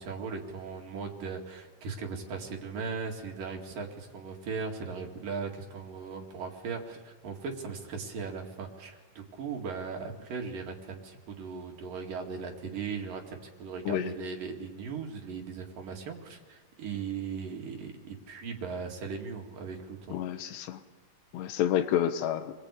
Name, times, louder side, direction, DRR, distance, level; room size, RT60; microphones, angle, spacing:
voice 1, 0.0-20.2, right 5 dB, 60° right, 1 dB, 3.8 m, -38 dB
voice 2, 20.1-20.8 21.3-22.5, left 10 dB, 85° left, 9 dB, 3.4 m, -29 dB
29.5 x 22.0 x 8.4 m, 1.4 s
omnidirectional pair, 4.8 m